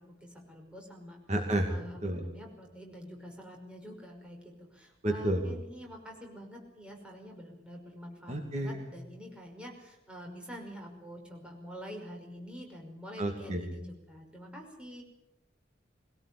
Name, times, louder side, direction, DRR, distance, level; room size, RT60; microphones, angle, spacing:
voice 1, 0.0-1.2 1.6-15.0, equal, 5° right, 0 dB, 5.5 m, -47 dB
voice 2, 1.3-1.7 2.0-2.2 5.0-5.5 8.3-8.9 13.2-13.7, right 1 dB, 35° right, 3 dB, 2.5 m, -31 dB
22.5 x 17.5 x 8.5 m, 0.89 s
head